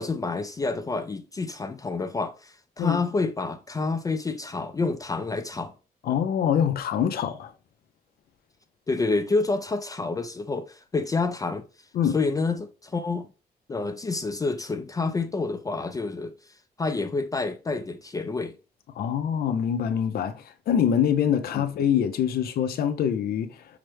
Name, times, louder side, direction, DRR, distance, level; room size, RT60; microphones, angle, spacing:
voice 1, 0.0-5.7 8.9-11.6 12.1-13.3 13.7-16.3 16.8-18.5 21.5-21.7, left 3 dB, 20° left, 0.3 m, -28 dB
voice 2, 6.0-7.5 11.9-12.2 19.0-23.6, left 8 dB, 70° left, 0.6 m, -24 dB
5.8 x 2.1 x 3.2 m
cardioid pair, 110°, 16 cm